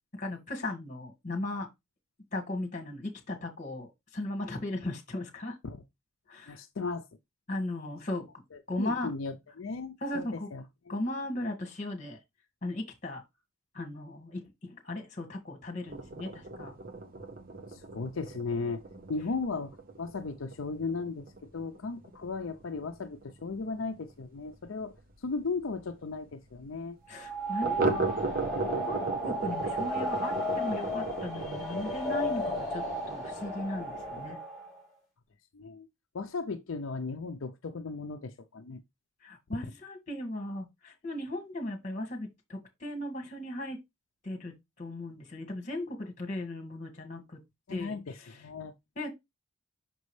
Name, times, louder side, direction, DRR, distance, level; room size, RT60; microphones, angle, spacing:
voice 1, 0.2-1.7 2.3-3.9 4.1-5.6 6.3-6.6 7.5-8.2 8.7-9.1 10.0-10.5 10.9-12.2 12.6-13.2 13.7-16.7 27.1-28.2 28.9-34.4 39.2-43.8 44.2-44.5 44.8-47.4 47.7-48.0 49.0-49.1, left 1 dB, 35° left, 1.8 m, -37 dB
voice 2, 6.5-7.1 8.5-11.0 17.7-18.8 19.1-27.0 35.5-35.9 36.1-38.8 39.5-39.7 47.7-48.7, left 4 dB, 75° left, 0.5 m, -36 dB
sound 1, 15.9-25.1 25.4-25.5 25.8-25.9 26.3-26.4 27.6-34.3, right 3 dB, 45° right, 0.9 m, -37 dB
sound 2, 27.1-34.8, equal, ahead, 3.4 m, -34 dB
6.0 x 5.3 x 3.2 m
head